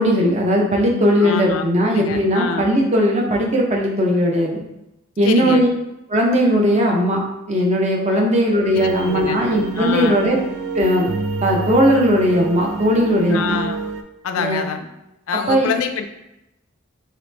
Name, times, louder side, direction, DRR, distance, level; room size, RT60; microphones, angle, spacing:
voice 1, 0.0-4.6 5.2-5.7 6.1-7.2 7.5-10.4 10.7-11.1 11.4-13.6 14.4-14.6 15.3-15.7, equal, 35° right, -1 dB, 0.6 m, -18 dB
voice 2, 1.2-2.7 5.2-5.6 8.1-8.3 8.7-9.4 9.8-10.2 13.3-13.8 14.2-14.9 15.3-16.0, left 6 dB, 85° left, 7 dB, 0.4 m, -26 dB
sound 1, 8.7-14.0, right 3 dB, 75° right, 0.4 m, -27 dB
3.0 x 2.9 x 3.2 m, 0.92 s
head